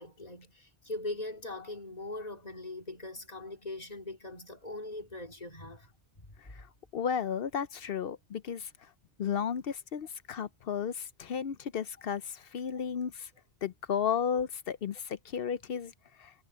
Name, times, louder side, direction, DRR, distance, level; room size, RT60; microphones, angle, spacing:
voice 1, 0.0-5.9 6.2-6.3, left 2 dB, 35° left, 2.6 m, -41 dB
voice 2, 6.9-8.7 9.2-13.3 13.6-15.9 16.2-16.3, left 7 dB, 60° left, 0.8 m, -33 dB
omnidirectional pair, 1.1 m